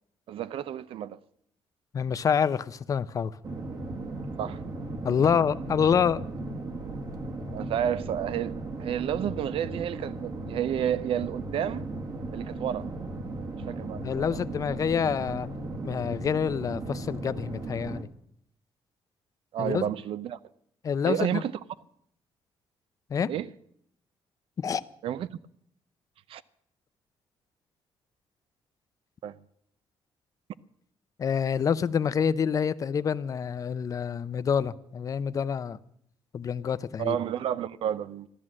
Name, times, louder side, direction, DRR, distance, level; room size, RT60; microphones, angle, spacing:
voice 1, 0.3-1.2 4.4-4.6 7.5-8.5 8.8-11.8 12.3-12.9 13.7-14.4 19.5-20.4 21.1-21.5 23.3-23.5 25.0-25.3 26.3-26.4 29.2-29.4 37.0-38.3, right 10 dB, 65° right, 0.6 m, -30 dB
voice 2, 1.9-3.3 5.0-6.2 14.0-15.5 15.8-18.1 19.6-19.9 20.8-21.4 23.1-23.3 24.6-24.8 31.2-35.8 36.3-37.2, left 7 dB, 35° left, 0.5 m, -27 dB
sound 1, 3.4-18.0, right 2 dB, 40° right, 1.6 m, -36 dB
14.0 x 12.5 x 7.5 m
cardioid pair, 160°, 10 cm